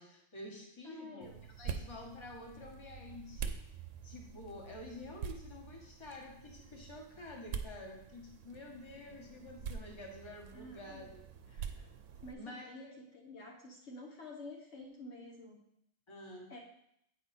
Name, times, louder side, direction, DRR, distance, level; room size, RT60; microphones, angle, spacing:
voice 1, 0.0-1.3 1.6-3.6 4.0-11.9 12.3-13.0 16.1-16.5, left 2 dB, 20° left, 0 dB, 1.3 m, -49 dB
voice 2, 0.8-1.4 10.5-11.1 12.2-15.6 16.5-16.6, left 2 dB, 60° left, -1 dB, 1.2 m, -49 dB
sound 1, 1.2-12.3, right 7 dB, 75° right, 0.9 m, -46 dB
8.9 x 4.8 x 4.2 m, 0.76 s
omnidirectional pair, 1.4 m